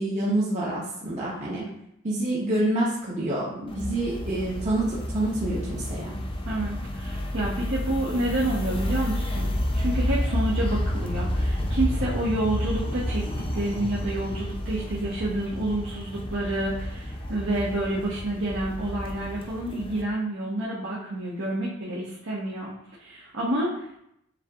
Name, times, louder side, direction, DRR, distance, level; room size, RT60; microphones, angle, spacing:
voice 1, 0.0-1.6 2.0-6.1, right 1 dB, 35° right, -7 dB, 0.8 m, -27 dB
sound 1, 3.7-20.0, left 1 dB, 25° left, 0.5 m, -30 dB
voice 2, 6.5-13.3 13.5-22.7 23.0-24.0, right 1 dB, 70° right, -6 dB, 1.0 m, -29 dB
7.2 x 2.8 x 2.4 m, 0.77 s
head